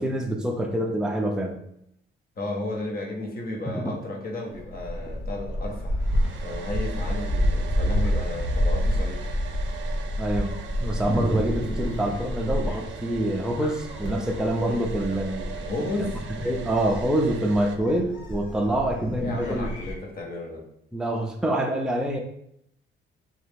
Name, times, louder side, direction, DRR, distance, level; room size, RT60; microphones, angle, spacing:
voice 1, 0.0-1.6 3.7-3.8 10.2-10.5 10.8-15.6 16.0-16.1 16.4-19.7 20.9-22.2, right 1 dB, 5° right, 1 dB, 0.4 m, -26 dB
voice 2, 2.4-5.9 6.4-9.2 15.6-16.1 19.2-20.6, left 2 dB, 50° left, 0 dB, 1.0 m, -33 dB
Gull seagull, 4.5-19.9, equal, 75° left, 0.9 m, -29 dB
Domestic sounds home sounds, 6.0-17.8, right 7 dB, 70° right, 0.5 m, -42 dB
3.2 x 2.4 x 3.3 m, 0.74 s
cardioid pair, 90°, 20 cm